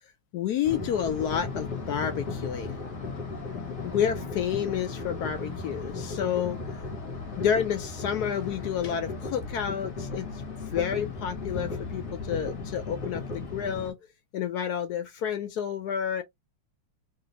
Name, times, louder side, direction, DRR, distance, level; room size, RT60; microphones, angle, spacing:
voice 1, 0.3-2.9 3.8-6.6 7.4-10.3 10.7-14.0 14.3-16.2, left 8 dB, 75° left, 0.9 m, -30 dB
sound 1, 0.6-13.9, left 4 dB, 45° left, 1.3 m, -36 dB
3.3 x 2.4 x 2.9 m
omnidirectional pair, 2.3 m